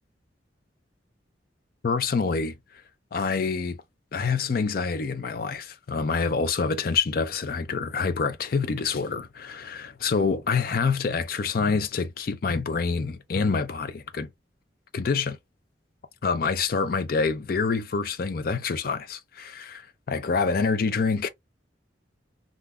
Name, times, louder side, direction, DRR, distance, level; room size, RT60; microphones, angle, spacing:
voice 1, 1.8-2.6 3.1-3.8 4.1-14.3 14.9-15.4 16.2-21.3, left 5 dB, 50° left, 0.4 m, -26 dB
3.5 x 2.5 x 2.3 m
head